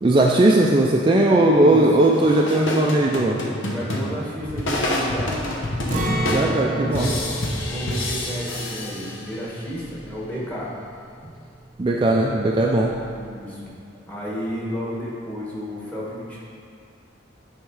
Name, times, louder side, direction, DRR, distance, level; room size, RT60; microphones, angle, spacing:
voice 1, 0.0-3.4 6.3-7.2 11.8-12.9, right 1 dB, 25° right, -2 dB, 0.4 m, -18 dB
voice 2, 1.3-2.1 3.6-5.3 6.7-7.4 7.7-10.7 13.1-13.7 14.1-16.4, equal, 10° left, -7 dB, 1.6 m, -32 dB
sound 1, 2.1-9.6, left 1 dB, 80° left, 1.0 m, -28 dB
Acoustic guitar, 5.9-11.8 12.1-12.3 12.7-13.2, right 1 dB, 40° right, 0.8 m, -31 dB
9.4 x 3.6 x 4.8 m, 2.4 s
head